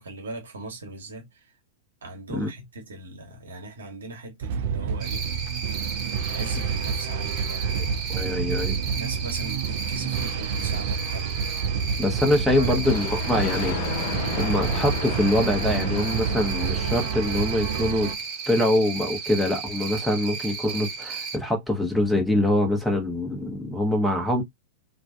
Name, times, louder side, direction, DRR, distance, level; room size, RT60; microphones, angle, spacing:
voice 1, 0.0-1.4 2.0-5.3 6.1-7.7 8.9-11.3 12.3-13.0, right 2 dB, 80° right, 0.9 m, -39 dB
sound 1, 4.4-18.1, right 7 dB, 55° right, 0.3 m, -29 dB
Cricket, 5.0-21.4, right 5 dB, 40° right, 0.9 m, -34 dB
voice 2, 8.1-8.8 12.0-18.1 18.5-24.4, left 1 dB, ahead, 0.8 m, -24 dB
Thunder, 12.8-18.1, left 8 dB, 55° left, 0.4 m, -34 dB
2.4 x 2.2 x 2.3 m
figure-of-eight pair, 100°, 0 cm